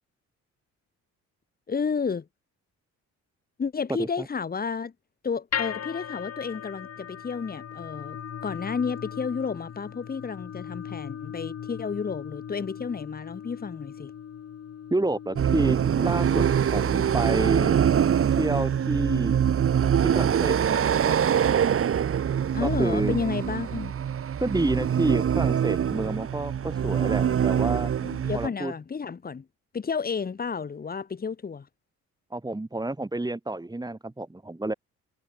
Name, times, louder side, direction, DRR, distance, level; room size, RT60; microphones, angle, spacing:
voice 1, 1.7-2.3 3.6-4.9 5.2-14.1 22.5-23.9 28.0-29.5 29.7-31.7, left 5 dB, 30° left, 1.4 m, -31 dB
sound 1, 5.5-21.7, left 8 dB, 55° left, 3.4 m, -40 dB
voice 2, 14.9-16.4 16.7-17.8 18.3-19.4 20.0-21.3 22.6-23.1 24.4-27.9 28.3-28.7 32.3-34.7, right 2 dB, 15° right, 4.3 m, -29 dB
sound 2, 15.4-28.5, right 8 dB, 45° right, 1.3 m, -24 dB
cardioid pair, 90°, 30 cm